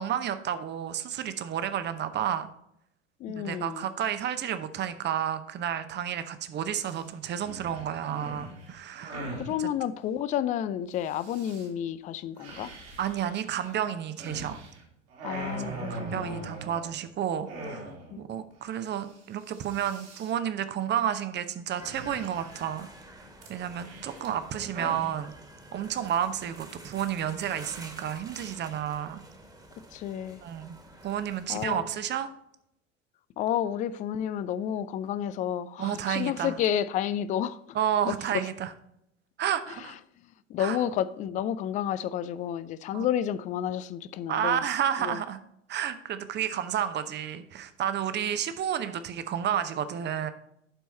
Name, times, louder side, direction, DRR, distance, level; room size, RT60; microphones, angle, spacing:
voice 1, 0.0-2.5 3.3-9.2 9.6-9.7 13.0-14.6 15.5-17.9 18.2-22.9 23.5-25.3 25.7-29.2 30.4-30.7 31.0-32.3 35.8-36.6 37.7-38.7 39.4-40.0 40.6-40.8 42.9-43.1 44.3-45.4 45.7-50.3, right 9 dB, 30° right, 0.8 m, -31 dB
voice 2, 3.2-3.9 9.3-12.7 15.2-16.5 18.1-18.2 29.9-30.4 31.5-31.8 33.4-37.6 38.1-38.4 39.7-39.9 40.5-44.7 45.0-45.2, left 10 dB, 25° left, 0.3 m, -31 dB
sound 1, 6.8-7.0 7.4-9.5 11.0-11.7 12.4-14.8 15.1-17.0 17.5-18.2 18.5-18.6 18.9-19.2 19.4-20.3 21.8-22.7 23.4-25.1, right 2 dB, 65° right, 2.6 m, -41 dB
sound 2, 21.8-31.7, right 1 dB, 10° right, 1.6 m, -49 dB
11.5 x 4.6 x 4.2 m
figure-of-eight pair, 75°, 36 cm